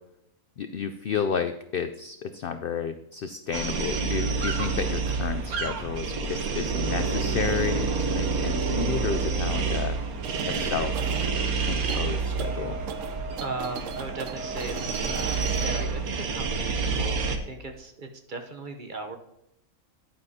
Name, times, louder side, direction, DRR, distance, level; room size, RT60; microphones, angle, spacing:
voice 1, 0.6-10.0 10.4-10.9 11.7-12.8, left 6 dB, 85° left, 9 dB, 0.5 m, -31 dB
sound 1, 3.5-17.4, right 4 dB, 90° right, 1.4 m, -28 dB
sound 2, 10.2-15.8, right 6 dB, 70° right, 0.9 m, -38 dB
voice 2, 13.4-19.2, right 3 dB, 40° right, 5 dB, 0.8 m, -37 dB
10.5 x 9.5 x 2.8 m, 0.81 s
omnidirectional pair, 1.5 m